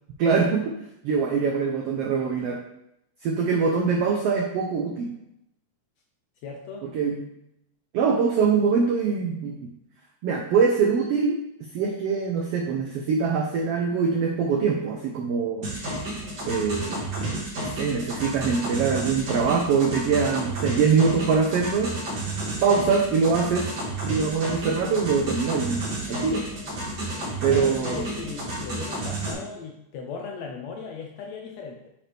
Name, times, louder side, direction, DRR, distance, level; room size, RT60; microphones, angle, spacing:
voice 1, 0.2-0.7 1.0-2.6 3.2-5.1 6.8-7.3 7.9-9.6 10.2-11.4 11.7-15.7 16.5-17.0 17.6-21.9 22.6-23.6 24.0-25.8 26.1-26.4 27.4-28.1, right 5 dB, 85° right, 1 dB, 1.3 m, -23 dB
voice 2, 6.4-6.9 27.5-31.9, left 5 dB, 75° left, 1 dB, 1.6 m, -37 dB
sound 1, 15.6-29.3, right 2 dB, 35° right, 2.5 m, -31 dB
8.7 x 4.3 x 3.3 m, 0.80 s
omnidirectional pair, 3.6 m